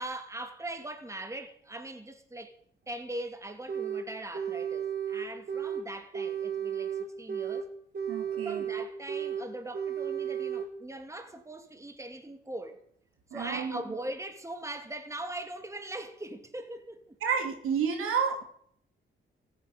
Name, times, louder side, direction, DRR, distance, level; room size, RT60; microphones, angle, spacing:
voice 1, 0.0-2.6 2.9-7.7 8.3-12.8 13.3-17.2, right 1 dB, 15° right, 2.4 m, -40 dB
sound 1, 3.7-4.1 4.3-5.9 6.1-7.7 7.9-9.5 9.7-10.7, right 8 dB, 45° right, 3.6 m, -33 dB
voice 2, 8.1-8.6 13.3-14.0 17.2-18.4, right 6 dB, 85° right, 3.0 m, -30 dB
15.0 x 8.8 x 9.5 m
cardioid pair, 70°, 21 cm